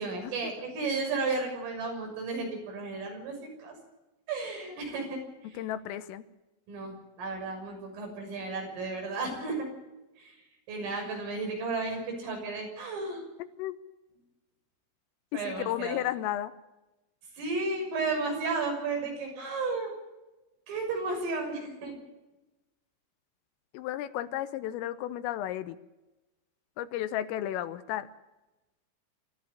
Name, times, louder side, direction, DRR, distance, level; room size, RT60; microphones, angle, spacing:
voice 1, 0.0-3.8 4.3-5.2 6.7-9.7 10.2-10.4 10.7-13.2 15.3-16.0 17.4-19.9 20.7-21.9, right 3 dB, 75° right, 2 dB, 9.1 m, -33 dB
voice 2, 5.5-6.3 13.6-13.8 15.3-16.5 23.7-25.8 26.8-28.1, left 12 dB, 85° left, 12 dB, 3.6 m, -33 dB
26.5 x 14.0 x 8.6 m, 1.0 s
omnidirectional pair, 5.9 m